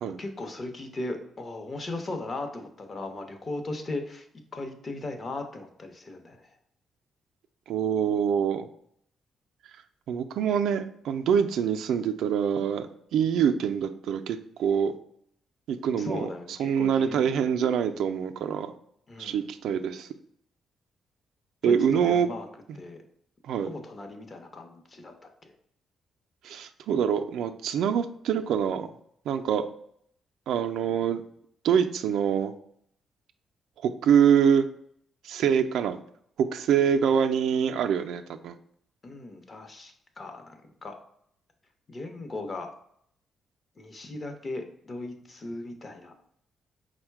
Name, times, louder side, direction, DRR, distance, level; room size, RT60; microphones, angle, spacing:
voice 1, 0.2-6.5 16.0-17.4 19.1-19.4 21.6-22.5 22.7-23.0 23.5-25.5 39.0-40.5 40.8-40.9 41.9-42.7 43.8-46.1, left 2 dB, 35° left, 5 dB, 0.7 m, -37 dB
voice 2, 7.7-8.7 10.1-12.9 13.1-14.9 15.7-16.3 16.6-18.7 19.2-20.1 21.6-22.3 22.7-22.8 23.4-23.7 26.4-28.9 29.3-29.6 30.5-31.2 31.6-32.5 33.8-34.7 35.2-36.0 36.4-38.5, right 8 dB, 85° right, 8 dB, 0.3 m, -25 dB
4.6 x 2.1 x 4.5 m, 0.68 s
cardioid pair, 115°, 0 cm